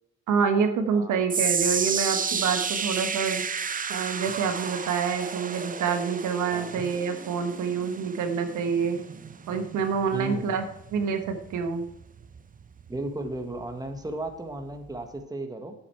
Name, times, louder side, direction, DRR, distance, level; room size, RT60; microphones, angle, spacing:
voice 1, 0.3-3.4 3.9-9.0 9.5-10.6 10.9-11.9, right 6 dB, 80° right, 7 dB, 1.3 m, -27 dB
voice 2, 0.9-1.2 6.5-6.9 10.1-10.5 12.9-15.7, right 2 dB, 10° right, 5 dB, 1.6 m, -35 dB
sound 1, 1.3-13.6 13.9-14.3 14.9-15.0, right 6 dB, 25° right, 0.7 m, -32 dB
8.7 x 8.4 x 4.6 m, 0.79 s
cardioid pair, 90°, 30 cm